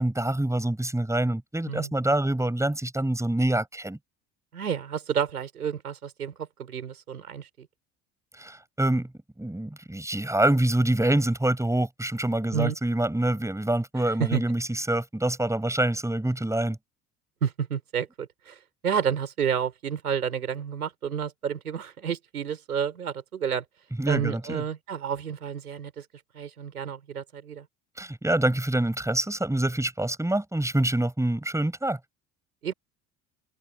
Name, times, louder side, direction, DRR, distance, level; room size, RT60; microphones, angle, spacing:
voice 1, 0.0-4.0 8.4-9.1 9.4-16.8 24.0-24.6 28.0-32.0, right 1 dB, 5° right, 6.7 m, -26 dB
voice 2, 4.5-7.7 12.5-12.8 14.2-14.4 17.4-18.6 18.8-23.6 24.1-26.0 26.3-27.7 32.6-32.7, right 7 dB, 85° right, 6.1 m, -30 dB
figure-of-eight pair, 60°, 44 cm